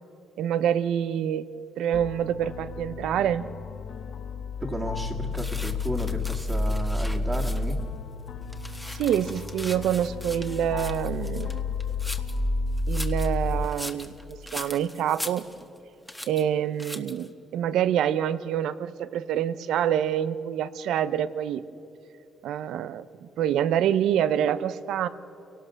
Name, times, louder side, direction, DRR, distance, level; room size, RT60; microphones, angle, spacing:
voice 1, 0.4-1.5 1.8-3.4 8.9-11.6 12.9-15.4 16.3-21.6 22.4-25.1, right 10 dB, 80° right, 15 dB, 0.7 m, -26 dB
sound 1, 1.9-13.7, left 3 dB, 65° left, 1.1 m, -31 dB
voice 2, 4.6-7.8, right 1 dB, 25° right, -4 dB, 2.0 m, -33 dB
sound 2, 5.3-7.9 8.3-12.4 12.8-15.8 16.1-16.4 16.8-17.3, left 1 dB, 5° left, 1.3 m, -40 dB
29.0 x 18.0 x 6.4 m, 2.8 s
cardioid pair, 90°, 0 cm